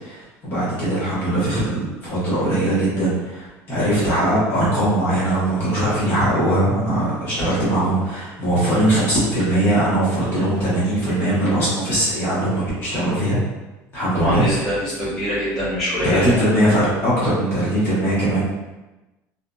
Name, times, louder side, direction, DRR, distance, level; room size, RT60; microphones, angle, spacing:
voice 1, 0.0-13.4 13.9-14.7 16.0-18.4, right 1 dB, 35° left, -9 dB, 1.0 m, -20 dB
voice 2, 14.1-16.4, equal, 10° left, -13 dB, 0.9 m, -23 dB
2.6 x 2.5 x 2.2 m, 1.1 s
cardioid pair, 180°, 7 cm